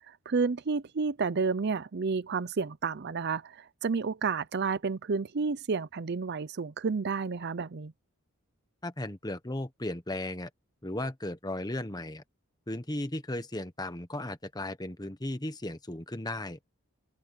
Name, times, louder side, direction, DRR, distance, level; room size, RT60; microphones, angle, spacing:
voice 1, 0.1-7.9, right 4 dB, 50° right, 0.5 m, -31 dB
voice 2, 8.8-10.5 10.8-12.2 12.7-16.6, left 1 dB, 20° left, 1.3 m, -36 dB
open air
head